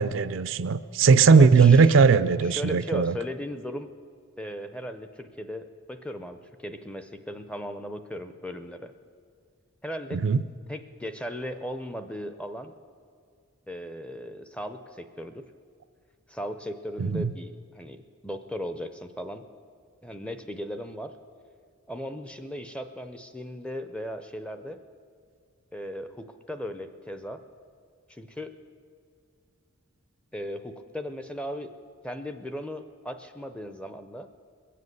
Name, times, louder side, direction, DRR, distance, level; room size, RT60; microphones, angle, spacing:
voice 1, 0.0-3.2 10.1-10.4 17.0-17.3, right 5 dB, 60° right, 14 dB, 0.4 m, -19 dB
voice 2, 1.3-2.0 2.4-3.9 4.4-8.9 9.8-10.2 10.7-12.7 13.7-15.4 16.3-19.4 20.0-21.1 21.9-24.8 25.7-27.4 28.1-28.5 30.3-31.7 32.0-34.3, equal, 5° left, 9 dB, 0.5 m, -37 dB
21.0 x 7.5 x 8.0 m, 2.2 s
head